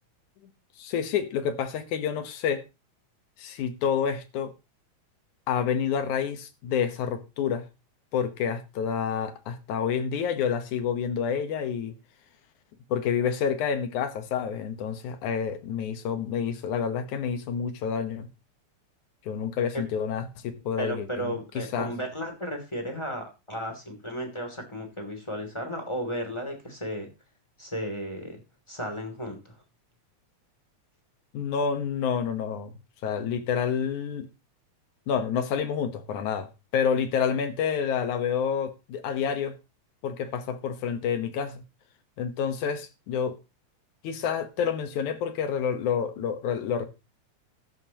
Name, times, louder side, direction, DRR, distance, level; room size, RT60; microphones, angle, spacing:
voice 1, 0.8-2.6 3.4-4.5 5.5-7.6 8.1-12.0 12.9-18.3 19.3-21.9 31.3-32.7 33.0-34.3 35.1-39.6 40.0-41.6 42.2-43.4 44.0-46.9, left 7 dB, 90° left, 2.8 m, -28 dB
voice 2, 20.8-27.1 27.6-28.4 28.7-29.5, equal, 10° left, 2.7 m, -34 dB
14.5 x 12.0 x 3.0 m
omnidirectional pair, 3.3 m